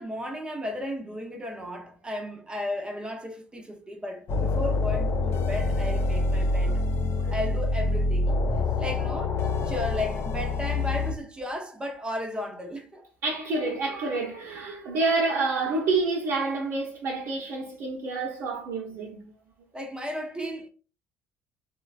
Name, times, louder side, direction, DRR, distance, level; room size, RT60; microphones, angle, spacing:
voice 1, 0.0-6.8 7.3-8.4 8.8-13.1 19.7-20.7, left 1 dB, 15° right, 0.6 m, -34 dB
sound 1, 4.3-11.1, left 3 dB, 50° left, 0.5 m, -26 dB
voice 2, 13.2-19.3, right 3 dB, 60° right, 0.7 m, -28 dB
3.1 x 2.1 x 2.4 m
hypercardioid pair, 65°, 6 cm